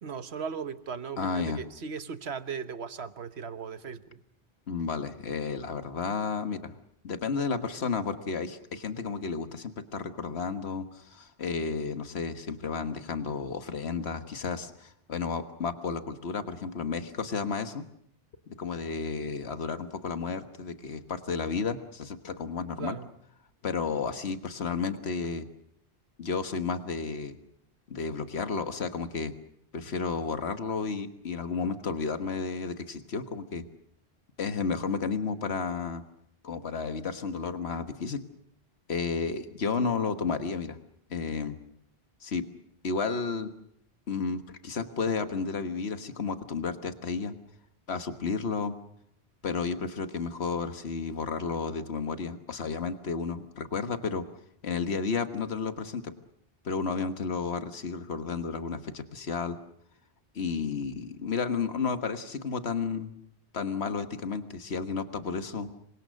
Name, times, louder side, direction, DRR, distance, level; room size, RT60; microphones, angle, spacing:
voice 1, 0.0-4.2 22.8-23.1, right 6 dB, 80° right, 11 dB, 1.4 m, -37 dB
voice 2, 1.2-1.6 4.7-6.7 7.0-17.8 18.5-23.0 23.6-25.5 26.2-27.4 27.9-29.3 29.7-33.7 34.4-36.0 36.4-38.2 38.9-40.8 41.1-41.6 42.2-42.5 42.8-43.5 44.1-47.3 47.9-48.7 49.4-54.3 54.6-56.1 56.6-59.6 60.4-63.1 63.5-65.7, left 5 dB, 80° left, 9 dB, 1.6 m, -32 dB
27.5 x 24.5 x 6.4 m, 0.71 s
omnidirectional pair, 1.1 m